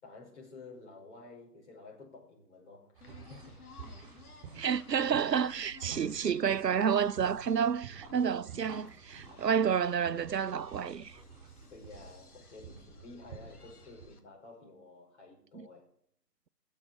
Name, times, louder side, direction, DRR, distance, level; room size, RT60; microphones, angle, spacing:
voice 1, 0.0-3.0 3.3-3.5 5.9-6.1 11.7-15.9, left 3 dB, 45° left, 5.7 m, -51 dB
sound 1, 2.9-14.1, right 5 dB, 25° right, 5.0 m, -50 dB
sound 2, 3.0-14.2, left 4 dB, 65° left, 2.4 m, -57 dB
voice 2, 4.6-11.2 15.5-15.7, right 7 dB, 85° right, 0.7 m, -30 dB
22.0 x 7.5 x 6.3 m
figure-of-eight pair, 145°, 48 cm